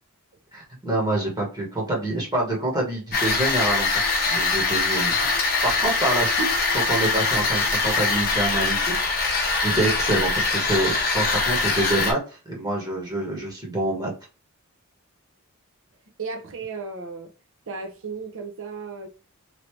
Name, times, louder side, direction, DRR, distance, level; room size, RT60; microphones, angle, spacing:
voice 1, 0.5-8.9 9.6-14.1, right 1 dB, 20° right, 1.2 m, -26 dB
sound 1, 3.1-12.1, left 3 dB, 45° left, 0.8 m, -23 dB
voice 2, 16.2-17.3 17.7-19.1, right 4 dB, 60° right, 0.8 m, -34 dB
3.0 x 2.7 x 3.1 m
head